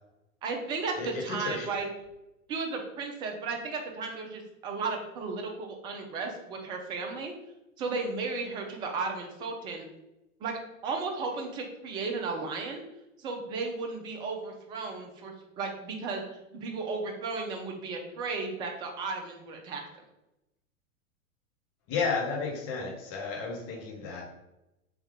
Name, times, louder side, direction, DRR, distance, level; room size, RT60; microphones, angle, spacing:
voice 1, 0.4-1.9 2.5-7.3 7.8-9.9 10.4-10.5 10.8-12.8 13.2-16.2 16.5-19.8, right 4 dB, 10° right, 2 dB, 0.3 m, -34 dB
voice 2, 1.0-1.7 21.9-24.2, left 4 dB, 35° left, 0 dB, 1.2 m, -32 dB
3.6 x 3.1 x 3.3 m, 0.91 s
hypercardioid pair, 100°, 42 cm